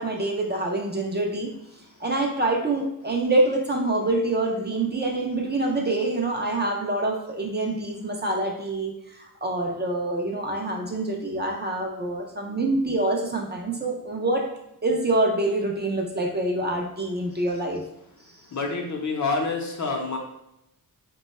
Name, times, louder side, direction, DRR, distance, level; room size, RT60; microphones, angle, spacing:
voice 1, 0.0-1.5 2.0-14.5 14.8-17.8, right 2 dB, 30° right, 1 dB, 0.4 m, -26 dB
voice 2, 18.5-20.2, left 3 dB, 55° left, 2 dB, 0.7 m, -27 dB
3.7 x 2.2 x 4.0 m, 0.81 s
wide cardioid pair, 175°, 35 cm